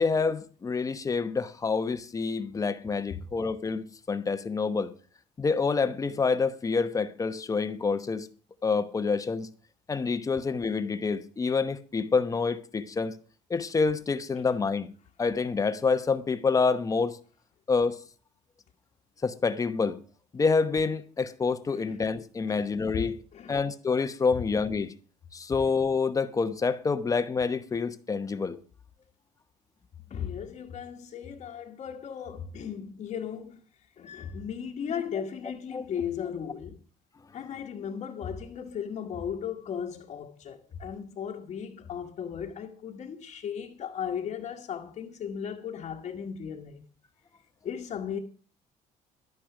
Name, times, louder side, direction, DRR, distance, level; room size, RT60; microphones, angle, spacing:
voice 1, 0.0-4.9 5.4-8.3 8.6-9.5 9.9-13.1 13.5-14.9 15.2-17.2 17.7-18.0 19.2-20.0 20.3-23.2 23.5-24.9 25.3-28.6 35.7-35.9, left 4 dB, 20° left, 0.9 m, -27 dB
voice 2, 30.1-33.6 34.0-36.8 37.3-46.8 47.6-48.2, left 8 dB, 45° left, 1.4 m, -36 dB
11.5 x 10.0 x 6.0 m
cardioid pair, 145°, 15 cm